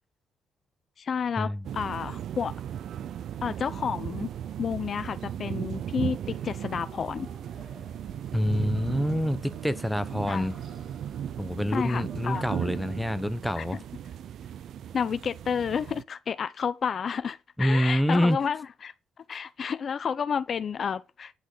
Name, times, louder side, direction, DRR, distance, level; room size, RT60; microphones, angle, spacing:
voice 1, 1.0-1.5 1.7-2.5 3.4-4.3 4.6-7.3 10.3-10.5 11.7-12.4 13.6-13.7 14.9-18.9 19.3-21.3, left 7 dB, 50° left, 0.8 m, -30 dB
sound 1, 1.6-16.0, right 10 dB, 70° right, 0.6 m, -37 dB
sound 2, 3.6-13.1, right 3 dB, 55° right, 7.3 m, -52 dB
voice 2, 8.3-10.6 11.4-13.8 17.6-18.4, equal, 5° left, 1.0 m, -26 dB
10.5 x 6.2 x 7.9 m
cardioid pair, 90°, 0 cm